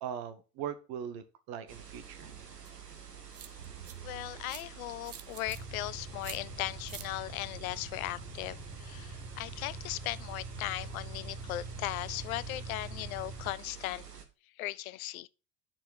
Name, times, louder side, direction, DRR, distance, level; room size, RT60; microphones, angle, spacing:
voice 1, 0.0-2.2, right 8 dB, 50° right, 1.4 m, -40 dB
sound 1, 1.7-14.3, right 7 dB, 85° right, 1.2 m, -49 dB
sound 2, 2.6-2.7 3.3-3.9 4.5-4.6 5.0-5.6 6.2-6.4 6.9-7.1, right 10 dB, 30° right, 0.9 m, -46 dB
voice 2, 4.0-14.0 14.6-15.3, left 16 dB, 65° left, 0.6 m, -38 dB
sound 3, 5.5-13.5, right 2 dB, 70° right, 2.7 m, -44 dB
9.6 x 4.6 x 4.0 m
figure-of-eight pair, 65°, 47 cm